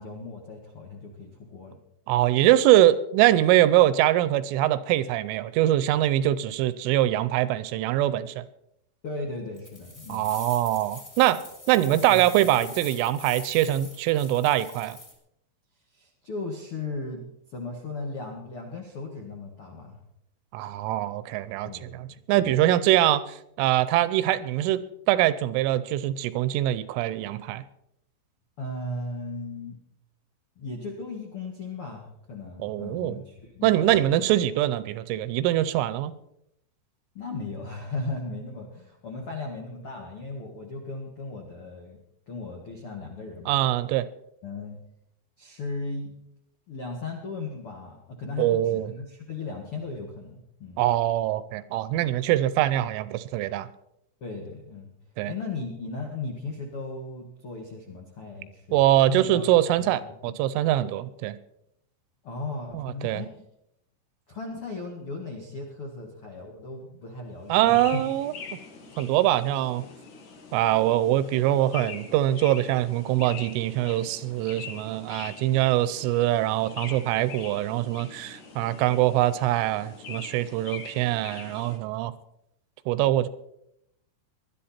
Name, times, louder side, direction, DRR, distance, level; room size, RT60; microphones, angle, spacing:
voice 1, 0.0-1.8 9.0-10.3 11.8-12.3 15.9-17.2 17.5-20.0 21.6-22.5 28.6-29.8 30.5-34.2 37.1-42.0 42.3-43.6 44.4-44.8 45.4-46.1 46.7-50.9 51.9-52.1 54.2-54.9 55.2-59.5 59.8-59.9 62.2-63.3 64.3-68.0 76.8-77.0, left 3 dB, 85° left, 1 dB, 1.2 m, -37 dB
voice 2, 2.1-8.4 10.1-11.4 11.7-15.0 20.5-27.6 32.6-33.2 33.6-36.1 43.5-44.0 48.4-48.9 50.8-53.7 55.2-55.3 58.7-61.4 62.7-63.2 67.5-68.3 69.0-69.9 70.5-82.1 82.9-83.3, right 14 dB, 80° right, 15 dB, 3.0 m, -23 dB
sound 1, 9.6-15.1, left 1 dB, 20° left, 1.8 m, -44 dB
sound 2, 67.5-81.8, left 5 dB, 55° left, 2.3 m, -43 dB
20.5 x 12.0 x 4.3 m, 0.77 s
omnidirectional pair, 5.8 m